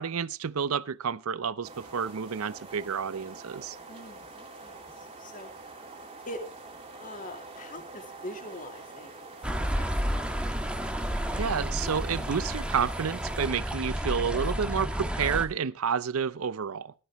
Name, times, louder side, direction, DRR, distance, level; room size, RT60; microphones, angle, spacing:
voice 1, 0.0-3.8 11.4-16.9, right 6 dB, 80° right, 0.6 m, -30 dB
sound 1, 1.6-13.5, right 3 dB, 25° right, 2.9 m, -46 dB
voice 2, 3.9-5.8 6.3-6.4 7.0-9.2 9.7-10.3, left 1 dB, 40° left, 2.4 m, -43 dB
sound 2, 9.4-15.5, equal, 5° right, 1.3 m, -31 dB
16.5 x 12.5 x 3.0 m
head